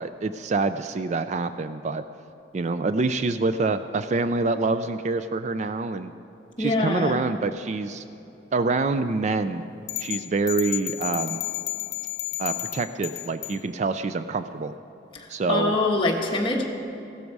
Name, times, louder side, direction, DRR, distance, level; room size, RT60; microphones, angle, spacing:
voice 1, 0.0-2.0 2.5-6.1 6.6-8.0 8.5-9.6 10.0-11.4 12.4-14.7 15.3-15.8, right 3 dB, 40° right, 11 dB, 0.3 m, -26 dB
voice 2, 6.6-7.2 15.1-16.7, left 2 dB, 25° left, 0 dB, 1.4 m, -24 dB
sound 1, 9.9-13.6, left 15 dB, 80° left, 0.8 m, -31 dB
15.0 x 12.5 x 4.7 m, 2.8 s
head